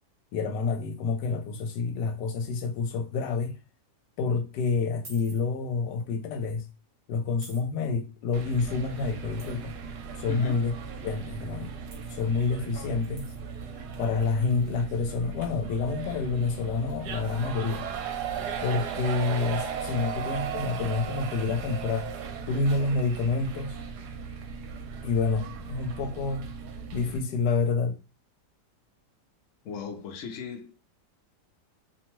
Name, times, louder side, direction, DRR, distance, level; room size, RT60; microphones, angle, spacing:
voice 1, 0.3-3.6 4.2-6.7 7.1-9.7 10.1-10.7 11.0-11.7 12.1-13.3 14.0-17.8 18.6-22.1 22.5-23.8 25.0-26.5 26.9-28.0, left 4 dB, 80° left, 1.2 m, -28 dB
sound 1, 5.0-5.4 6.4-6.5 7.4-7.7 9.4-9.6 11.9-12.3 13.2-13.4, right 3 dB, 45° right, 0.7 m, -48 dB
sound 2, 8.3-27.2, right 6 dB, 75° right, 1.1 m, -37 dB
voice 2, 10.3-10.6 29.6-30.8, left 3 dB, 65° left, 0.8 m, -36 dB
2.8 x 2.2 x 3.0 m
omnidirectional pair, 1.8 m